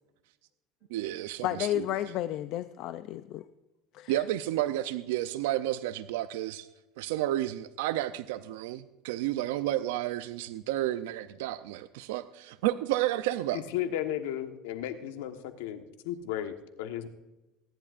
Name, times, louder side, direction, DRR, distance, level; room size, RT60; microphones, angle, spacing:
voice 1, 0.9-1.9 4.1-6.7 7.0-13.6, right 14 dB, 90° right, 12 dB, 0.5 m, -31 dB
voice 2, 1.4-3.4 3.9-4.1, left 13 dB, 55° left, 11 dB, 0.5 m, -32 dB
voice 3, 13.5-17.1, left 11 dB, 90° left, 7 dB, 1.2 m, -34 dB
23.0 x 11.0 x 2.5 m, 1.0 s
cardioid pair, 140°, 0 cm